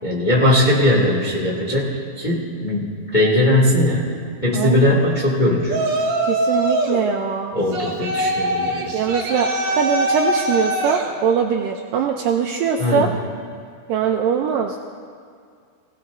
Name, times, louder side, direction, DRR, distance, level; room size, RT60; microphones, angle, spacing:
voice 1, 0.0-5.8 7.5-8.9 12.8-13.1, left 1 dB, 15° left, -5 dB, 1.5 m, -19 dB
voice 2, 4.5-5.0 6.3-7.5 8.9-13.1 13.9-14.8, right 7 dB, 85° right, 2 dB, 2.0 m, -22 dB
Yell, 5.7-7.0 7.7-11.1, right 1 dB, 70° right, 4.4 m, -22 dB
23.5 x 17.0 x 2.7 m, 2.2 s
omnidirectional pair, 4.6 m